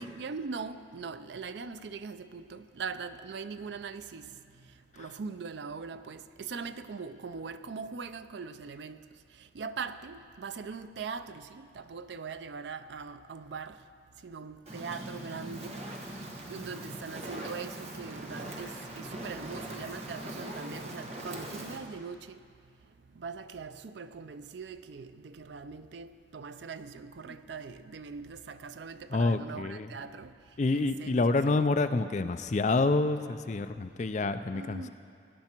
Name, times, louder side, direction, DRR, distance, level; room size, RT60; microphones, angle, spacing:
voice 1, 0.0-4.7 5.0-9.0 9.3-13.8 14.2-15.8 16.1-22.4 23.1-30.3 30.7-31.7 34.5-34.9, right 5 dB, 75° right, 0.5 m, -41 dB
Fire, 14.7-21.8, right 1 dB, 35° right, 1.3 m, -41 dB
voice 2, 29.1-29.9 30.6-34.9, left 3 dB, 40° left, 0.4 m, -28 dB
17.5 x 11.0 x 4.5 m
head